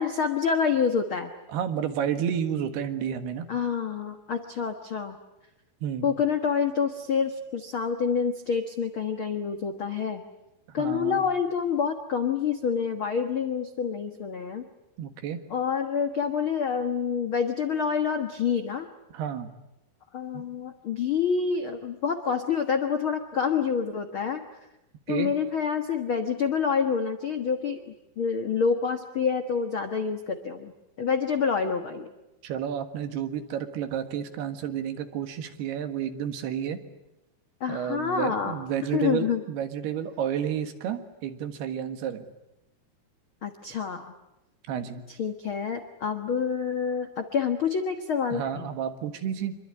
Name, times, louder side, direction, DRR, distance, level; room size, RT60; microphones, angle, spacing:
voice 1, 0.0-1.3 3.5-5.2 6.0-10.2 10.7-14.6 15.5-18.9 20.1-24.4 25.1-27.8 28.2-30.7 31.0-32.1 37.6-38.5 38.9-39.4 43.4-44.1 45.2-48.7, left 6 dB, 75° left, 6 dB, 1.1 m, -27 dB
voice 2, 1.5-3.5 5.8-6.1 10.8-11.2 15.0-15.4 19.1-19.5 20.3-20.4 25.1-25.3 32.4-36.8 37.7-42.3 44.7-45.0 48.3-49.6, right 9 dB, 70° right, 8 dB, 3.6 m, -31 dB
26.5 x 23.0 x 9.7 m, 0.94 s
omnidirectional pair, 4.9 m